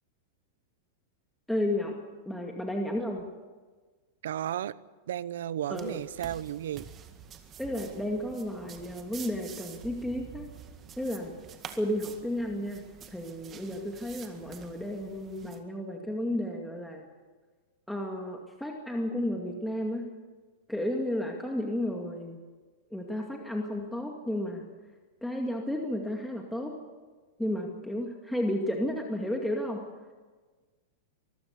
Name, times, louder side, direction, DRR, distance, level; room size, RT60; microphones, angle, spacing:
voice 1, 1.5-2.0 2.3-3.3 5.7-6.0 7.6-10.5 11.0-11.3 11.8-17.0 17.9-20.0 20.7-22.4 22.9-24.6 25.2-26.8 27.4-29.8, left 1 dB, ahead, 1 dB, 2.3 m, -32 dB
voice 2, 4.2-4.7 5.1-6.9, right 11 dB, 80° right, 19 dB, 0.7 m, -33 dB
sound 1, 5.7-15.6, right 8 dB, 30° right, 1.9 m, -48 dB
24.0 x 14.5 x 8.3 m, 1.4 s
hypercardioid pair, 130°, 0 cm